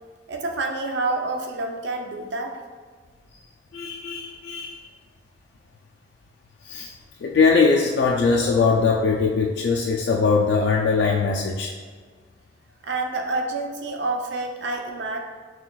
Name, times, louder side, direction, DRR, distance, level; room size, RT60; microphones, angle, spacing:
voice 1, 0.3-2.6 12.8-15.2, right 2 dB, 70° right, 3 dB, 0.5 m, -28 dB
voice 2, 3.7-4.8 6.6-6.9 7.2-11.7, left 4 dB, 70° left, -1 dB, 0.3 m, -21 dB
5.6 x 2.3 x 2.3 m, 1.5 s
head